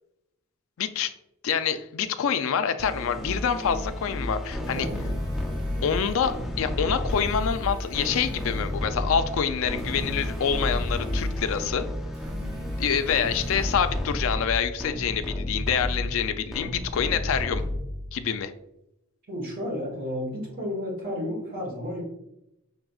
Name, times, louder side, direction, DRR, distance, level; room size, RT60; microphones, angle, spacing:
voice 1, 0.8-1.1 1.4-4.9 5.8-11.9 12.8-17.6 18.1-18.5, left 7 dB, 65° left, 10 dB, 0.3 m, -26 dB
sound 1, 2.8-18.2, left 1 dB, ahead, 0.4 m, -31 dB
sound 2, 4.4-6.3 6.9-8.7 9.6-11.4 12.0-13.8, right 1 dB, 85° right, 0.7 m, -46 dB
voice 2, 19.3-22.0, left 1 dB, 40° right, -2 dB, 1.3 m, -32 dB
4.9 x 3.3 x 2.3 m, 0.85 s
head